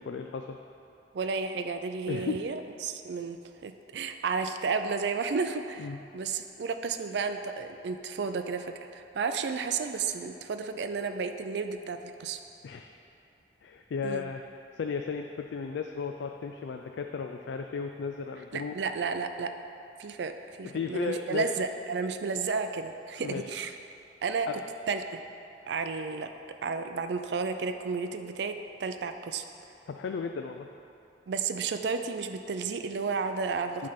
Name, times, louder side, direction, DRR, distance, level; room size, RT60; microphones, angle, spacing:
voice 1, 0.1-0.6 2.1-2.4 5.8-6.0 12.6-12.9 13.6-14.4 14.7-18.8 20.6-21.5 23.2-23.4 24.5-24.6 29.9-30.7 33.8-33.9, left 5 dB, 80° left, 4 dB, 0.3 m, -34 dB
voice 2, 1.1-3.4 3.6-12.4 14.0-14.3 18.5-19.5 20.0-20.3 20.6-23.7 24.2-24.5 24.9-25.2 25.7-26.3 26.6-29.4 31.3-33.9, right 5 dB, 70° right, 8 dB, 0.4 m, -32 dB
8.5 x 3.3 x 5.8 m, 2.9 s
head